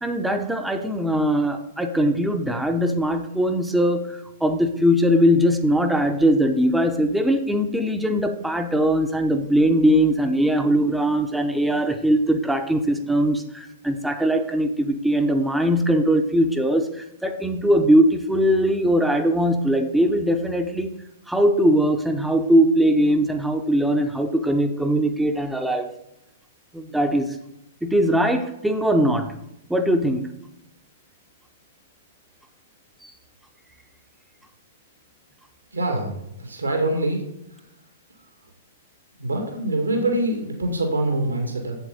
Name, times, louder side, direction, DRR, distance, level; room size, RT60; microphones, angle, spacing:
voice 1, 0.0-20.9 21.3-25.9 26.7-27.4 27.8-29.3 29.7-30.3 33.0-33.1, equal, 5° right, 6 dB, 0.8 m, -21 dB
voice 2, 35.7-37.2 37.5-37.6 39.2-41.8, right 1 dB, 75° right, 3 dB, 2.1 m, -25 dB
8.1 x 8.0 x 4.1 m, 0.84 s
figure-of-eight pair, 110°, 0 cm